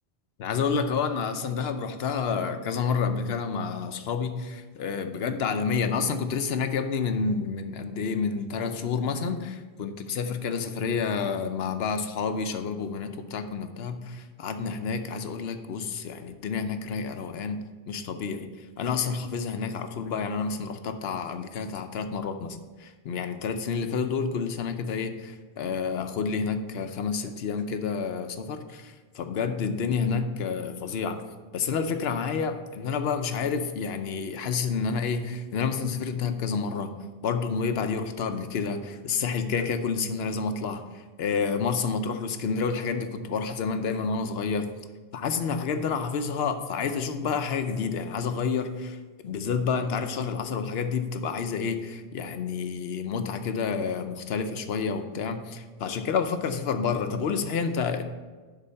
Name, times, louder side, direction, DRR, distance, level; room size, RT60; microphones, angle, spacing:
voice 1, 0.4-17.6 17.9-18.5 18.8-31.2 31.5-36.9 37.2-44.7 45.1-49.0 49.2-58.0, left 5 dB, 70° left, 8 dB, 0.9 m, -29 dB
11.0 x 4.1 x 5.6 m, 1.3 s
omnidirectional pair, 1.1 m